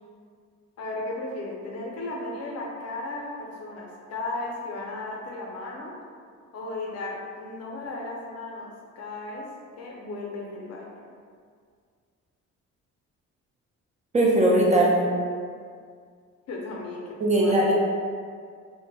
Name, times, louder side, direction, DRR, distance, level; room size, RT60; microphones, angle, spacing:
voice 1, 0.8-5.9 6.5-8.7 9.0-9.5 9.8-11.1 16.5-17.0 17.4-17.6, left 2 dB, 55° left, -2 dB, 0.6 m, -35 dB
voice 2, 14.1-15.1 17.2-17.7, right 1 dB, 25° right, -3 dB, 0.4 m, -20 dB
2.1 x 2.0 x 3.2 m, 2.1 s
cardioid pair, 90°, 30 cm